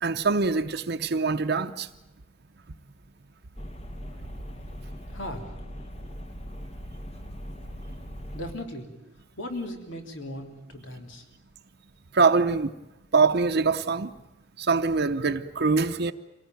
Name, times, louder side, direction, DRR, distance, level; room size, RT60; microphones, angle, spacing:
voice 1, 0.0-1.9 12.1-12.7 13.1-14.1 14.6-16.1, right 4 dB, 60° right, 0.8 m, -23 dB
sound 1, 3.6-8.5, equal, 35° left, 1.5 m, -40 dB
voice 2, 5.1-5.8 8.3-8.9 9.4-11.2, left 1 dB, 80° left, 3.3 m, -37 dB
26.0 x 18.5 x 9.2 m
head